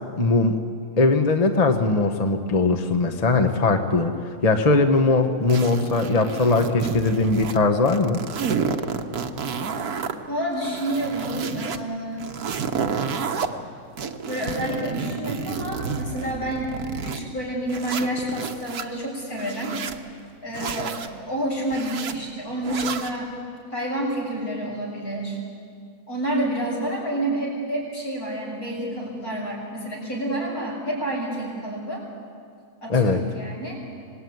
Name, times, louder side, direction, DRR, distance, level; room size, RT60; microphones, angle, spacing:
voice 1, 0.2-0.6 1.0-4.1 4.4-8.2 32.9-33.2, left 3 dB, 30° left, 6 dB, 1.1 m, -20 dB
sound 1, 5.5-7.6 7.9-10.1 10.6-11.8 12.2-13.5 14.0-17.2 17.7-18.8 19.3-20.0 20.5-21.1 21.7-22.1 22.6-23.2, right 6 dB, 80° right, 1.7 m, -30 dB
voice 2, 10.3-12.3 14.3-19.7 20.4-23.3 23.7-25.4 26.1-32.0 32.8-33.8, right 1 dB, 70° left, -3 dB, 7.6 m, -29 dB
26.0 x 19.0 x 9.5 m, 2.3 s
omnidirectional pair, 1.6 m